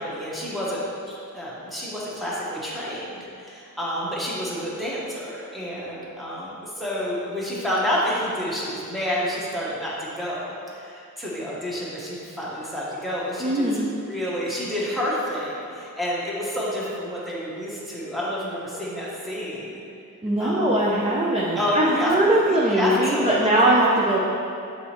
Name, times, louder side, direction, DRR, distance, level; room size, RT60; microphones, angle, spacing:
voice 1, 0.0-19.8 20.4-20.7 21.5-22.1 22.4-23.7, equal, ahead, -7 dB, 1.2 m, -29 dB
voice 2, 13.4-13.8 20.2-24.2, right 1 dB, 20° right, -5 dB, 0.5 m, -21 dB
8.3 x 4.1 x 3.0 m, 2.6 s
wide cardioid pair, 145°, 33 cm